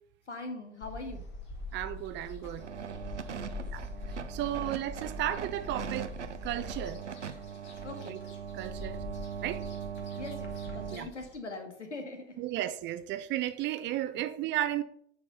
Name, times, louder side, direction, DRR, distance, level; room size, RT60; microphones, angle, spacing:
voice 1, 0.3-1.2 3.3-3.6 7.8-8.2 10.2-12.4, left 2 dB, 85° left, 1.7 m, -42 dB
sound 1, 0.8-11.4, left 2 dB, 30° left, 2.0 m, -44 dB
voice 2, 1.7-2.7 3.6-6.1 6.4-7.0 8.0-8.2 8.5-9.0 9.4-9.6 10.9-11.1 12.4-14.8, right 13 dB, 35° right, 0.6 m, -34 dB
sound 2, 2.6-11.0, right 8 dB, 90° right, 0.6 m, -40 dB
8.5 x 4.2 x 5.4 m
figure-of-eight pair, 85°, 34 cm